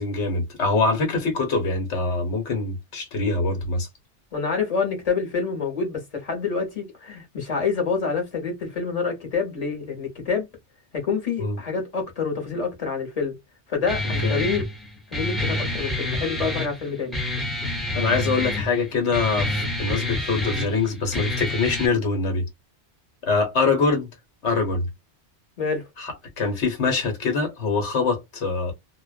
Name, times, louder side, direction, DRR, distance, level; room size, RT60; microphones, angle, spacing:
voice 1, 0.0-3.9 11.4-11.6 14.2-14.4 17.9-22.4 23.2-24.1 24.4-24.9 26.0-28.7, left 4 dB, 80° left, 1.3 m, -24 dB
voice 2, 4.3-10.5 10.9-13.3 13.7-14.7 15.1-17.2 25.6-25.9, left 5 dB, 35° left, 1.0 m, -27 dB
Guitar, 13.9-21.9, left 1 dB, ahead, 0.5 m, -28 dB
2.4 x 2.1 x 2.4 m
omnidirectional pair, 1.2 m